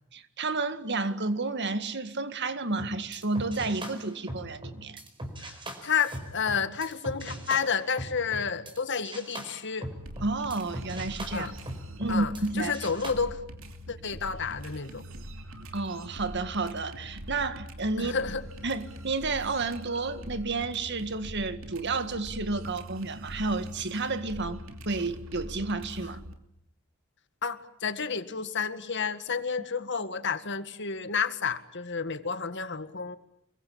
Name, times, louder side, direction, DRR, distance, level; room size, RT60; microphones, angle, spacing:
voice 1, 0.1-5.0 10.2-11.5 12.0-12.7 15.7-18.1 18.6-26.2, right 3 dB, 55° right, 1.9 m, -31 dB
sound 1, 2.7-8.8 9.0-12.5 12.7-13.1, right 1 dB, 25° right, 4.9 m, -40 dB
voice 2, 5.8-9.9 11.3-11.5 12.1-13.4 13.9-15.0 18.0-18.4 27.4-33.2, left 6 dB, 60° left, 1.9 m, -30 dB
sound 2, 10.0-26.3, equal, 70° right, 3.0 m, -43 dB
28.5 x 22.5 x 8.7 m
head